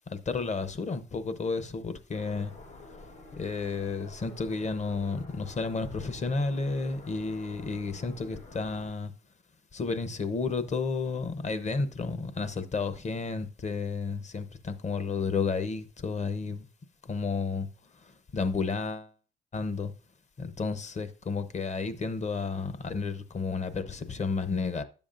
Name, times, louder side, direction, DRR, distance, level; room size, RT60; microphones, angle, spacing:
voice 1, 0.1-2.5 3.3-9.1 9.7-16.7 17.1-17.7 18.0-19.1 19.5-19.9 20.4-24.8, left 4 dB, 35° left, 0.8 m, -32 dB
sound 1, 2.1-8.9, left 3 dB, 75° left, 4.9 m, -49 dB
9.9 x 7.1 x 2.5 m
cardioid pair, 90°, 20 cm